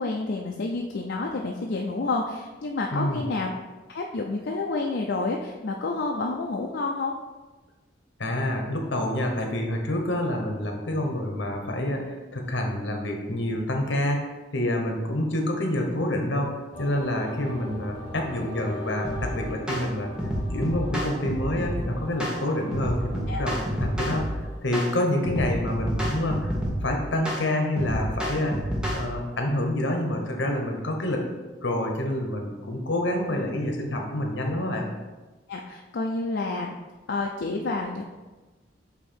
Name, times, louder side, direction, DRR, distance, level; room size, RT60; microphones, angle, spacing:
voice 1, 0.0-3.5 3.9-7.1 23.3-23.4 35.5-36.7 37.1-38.0, left 3 dB, 65° left, 0 dB, 0.5 m, -29 dB
voice 2, 2.9-3.2 8.2-16.5 16.8-20.1 20.5-24.2 24.6-26.6 26.8-28.6 28.9-31.2 31.6-34.9, left 1 dB, 80° left, 2 dB, 1.1 m, -27 dB
sound 1, 16.7-27.1, left 1 dB, 40° left, 1.5 m, -41 dB
sound 2, 19.0-19.3 19.7-19.9 20.2-21.8 22.2-22.4 22.7-24.3 24.7-24.9 25.2-26.8 27.3-27.4 27.8-29.0, equal, 5° right, 1.0 m, -29 dB
8.1 x 2.8 x 4.4 m, 1.2 s
head